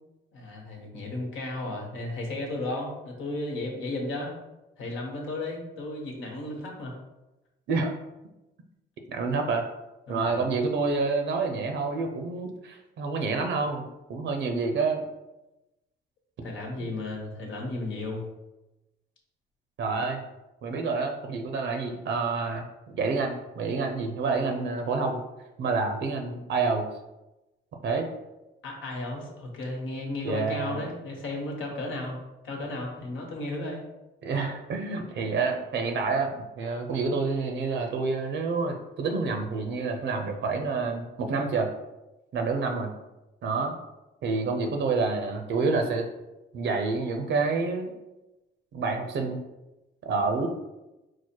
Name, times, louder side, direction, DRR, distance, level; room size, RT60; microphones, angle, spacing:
voice 1, 0.3-4.3 4.8-7.0 10.1-10.5 16.4-18.2 28.6-32.2 32.4-33.8, left 2 dB, 80° left, -1 dB, 1.2 m, -34 dB
voice 2, 9.1-9.6 10.1-15.0 16.8-16.9 19.8-20.2 20.6-25.2 25.6-26.9 27.8-28.1 30.2-30.8 34.2-41.7 42.3-42.9 43.4-43.7 44.2-46.1 46.5-47.9 48.7-49.4 50.0-50.5, right 4 dB, 65° right, 4 dB, 0.6 m, -28 dB
4.5 x 2.1 x 4.4 m, 1.0 s
cardioid pair, 90°, 20 cm